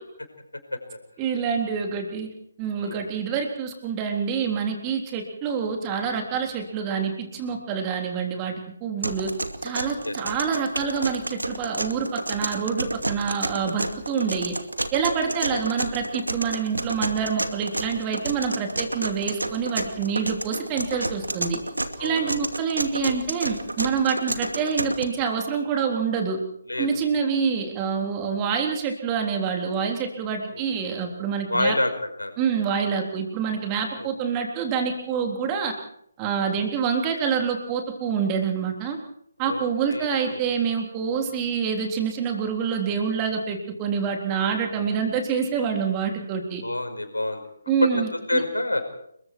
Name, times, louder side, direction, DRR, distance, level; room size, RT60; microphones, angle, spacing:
voice 1, 1.2-2.3 2.6-8.5 8.8-9.3 9.6-14.6 14.9-21.6 22.0-26.4 26.8-31.7 32.4-35.8 36.2-39.0 39.4-46.6 47.7-48.1, right 6 dB, 20° right, 3 dB, 3.7 m, -26 dB
sound 1, 9.0-25.0, right 1 dB, 75° right, 2.4 m, -30 dB
voice 2, 15.2-15.6 18.6-19.0 22.0-22.4 26.7-26.9 30.5-30.6 31.5-31.9 32.2-32.3 33.9-34.1 39.4-40.4 44.8-44.9 46.6-47.4 47.8-48.0 48.3-48.8, left 2 dB, 75° left, 6 dB, 5.4 m, -28 dB
30.0 x 22.0 x 4.7 m, 0.70 s
figure-of-eight pair, 145°, 0 cm